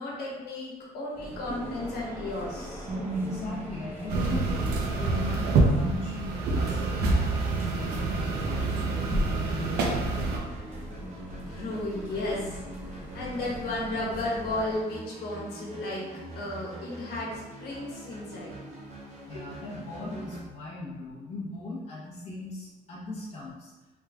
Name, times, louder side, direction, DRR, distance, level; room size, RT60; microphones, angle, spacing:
voice 1, 0.0-2.9 11.4-12.6 12.9-16.0 16.4-17.3 17.6-18.5 19.3-19.4 20.1-20.2, left 1 dB, 70° left, -4 dB, 1.2 m, -34 dB
sound 1, 1.1-14.7, equal, 10° right, 0.6 m, -40 dB
sound 2, 1.4-20.4, right 1 dB, 45° right, 0.8 m, -42 dB
voice 2, 3.1-4.5 5.0-8.9 9.3-10.5 19.3-23.7, left 2 dB, 40° left, -7 dB, 0.9 m, -39 dB
sound 3, 4.1-10.4, right 3 dB, 75° right, 0.6 m, -27 dB
3.4 x 3.1 x 2.3 m, 1.2 s
cardioid pair, 110°, 17 cm